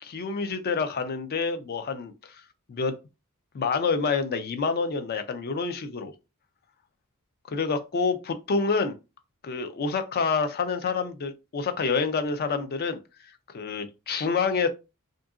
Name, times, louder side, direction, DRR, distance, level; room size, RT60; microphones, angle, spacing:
voice 1, 0.0-2.1 2.7-2.9 3.5-6.1 7.5-8.9 9.4-13.0 13.5-14.7, left 4 dB, 45° left, 0.4 m, -27 dB
2.7 x 2.5 x 2.3 m
head